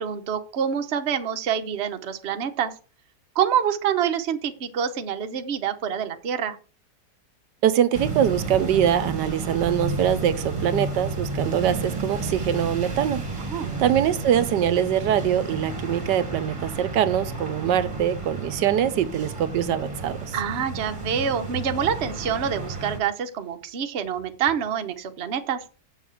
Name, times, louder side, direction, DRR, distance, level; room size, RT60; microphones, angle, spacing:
voice 1, 0.0-2.7 3.3-6.6 13.4-13.7 20.3-25.6, right 8 dB, 45° right, 1.0 m, -26 dB
voice 2, 7.6-13.2 13.8-20.2, right 10 dB, 80° right, 1.4 m, -23 dB
sound 1, 7.9-23.0, right 3 dB, 20° right, 1.6 m, -32 dB
7.1 x 6.5 x 7.7 m
omnidirectional pair, 1.9 m